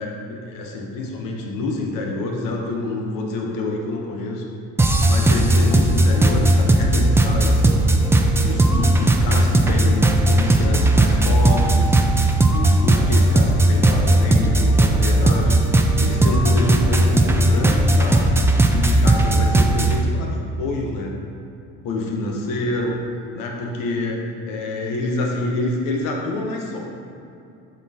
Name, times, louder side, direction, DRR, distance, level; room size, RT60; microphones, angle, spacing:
voice 1, 0.0-4.4 5.0-7.8 8.4-12.0 12.5-15.6 16.0-18.2 18.7-21.1 21.8-23.0 23.3-26.8, left 2 dB, 80° left, 0 dB, 1.0 m, -27 dB
sound 1, 4.8-20.0, right 1 dB, 10° right, 0.3 m, -17 dB
7.8 x 4.3 x 2.8 m, 2.7 s
cardioid pair, 105°, 32 cm